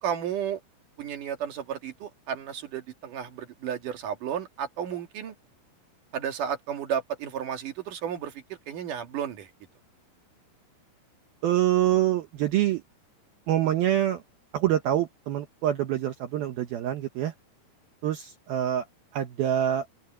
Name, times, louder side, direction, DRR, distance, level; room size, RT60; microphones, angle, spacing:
voice 1, 0.0-0.6 1.0-5.3 6.1-9.5, right 8 dB, 55° right, 2.7 m, -33 dB
voice 2, 11.4-12.8 13.5-14.2 14.5-17.3 18.0-18.9 19.1-19.9, right 12 dB, 75° right, 2.3 m, -25 dB
omnidirectional pair, 5.6 m